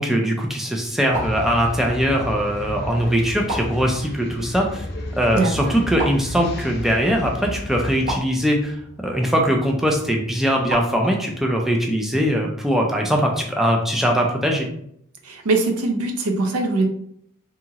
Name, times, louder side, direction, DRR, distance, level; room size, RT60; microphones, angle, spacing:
voice 1, 0.0-4.8 5.2-8.7 9.0-14.7, equal, ahead, 0 dB, 0.3 m, -21 dB
sound 1, 0.8-11.4, right 1 dB, 35° right, 0.8 m, -36 dB
sound 2, 1.1-8.2, left 1 dB, 50° left, 0.6 m, -32 dB
voice 2, 5.3-5.7 15.2-16.8, right 3 dB, 85° right, 4 dB, 0.6 m, -22 dB
2.8 x 2.4 x 2.8 m, 0.69 s
head